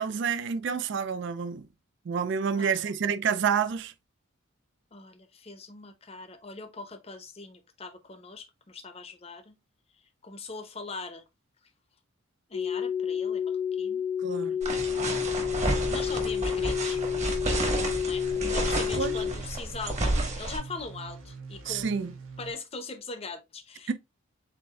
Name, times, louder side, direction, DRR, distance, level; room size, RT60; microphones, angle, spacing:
voice 1, 0.0-1.6 2.1-3.9 14.2-14.5 19.0-19.2 21.7-22.1 23.9-24.0, right 6 dB, 55° right, 0.3 m, -28 dB
voice 2, 2.6-2.9 4.9-9.6 10.2-11.2 12.5-14.6 15.9-17.0 18.0-23.9, left 3 dB, 30° left, 0.6 m, -41 dB
sound 1, 12.5-19.3, left 8 dB, 80° left, 1.0 m, -30 dB
sound 2, 14.6-20.6, right 2 dB, 35° right, 1.2 m, -31 dB
sound 3, 14.7-22.5, right 4 dB, 80° right, 1.2 m, -44 dB
7.6 x 2.6 x 2.3 m
head